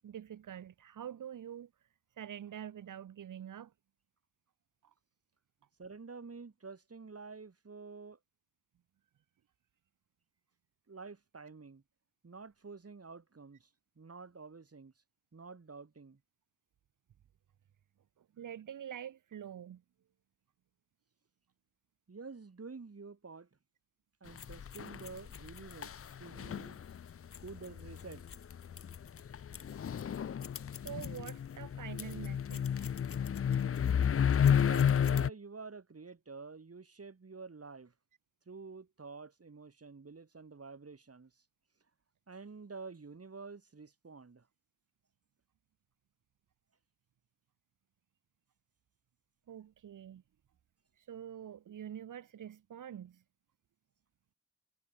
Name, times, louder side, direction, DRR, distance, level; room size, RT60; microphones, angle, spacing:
voice 1, 0.0-1.9 2.2-3.7 4.8-4.9 18.2-19.8 30.8-32.9 49.5-50.2 51.0-53.2, right 9 dB, 90° right, 0.7 m, -46 dB
voice 2, 5.8-8.2 10.9-11.8 12.2-13.7 14.0-14.9 15.3-16.2 22.1-23.5 24.2-26.8 27.4-28.3 34.6-37.9 38.5-41.4 42.3-44.5, right 4 dB, 50° right, 3.3 m, -49 dB
sound 1, 24.4-35.3, left 8 dB, 50° left, 0.5 m, -32 dB
wide cardioid pair, 65°, 31 cm